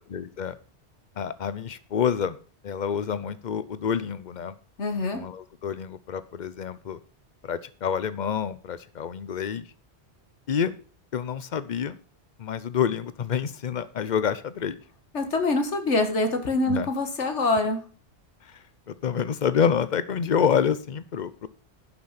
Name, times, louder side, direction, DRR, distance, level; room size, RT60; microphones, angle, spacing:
voice 1, 0.1-0.6 1.2-2.4 2.6-4.6 5.1-7.0 7.4-9.7 10.5-10.7 11.1-12.0 12.4-14.8 16.7-16.9 18.4-18.6 18.9-21.5, left 7 dB, 45° left, 15 dB, 0.8 m, -27 dB
voice 2, 4.8-5.2 15.1-17.8, left 2 dB, 90° left, 7 dB, 1.9 m, -25 dB
10.5 x 6.1 x 5.7 m, 0.40 s
omnidirectional pair, 1.2 m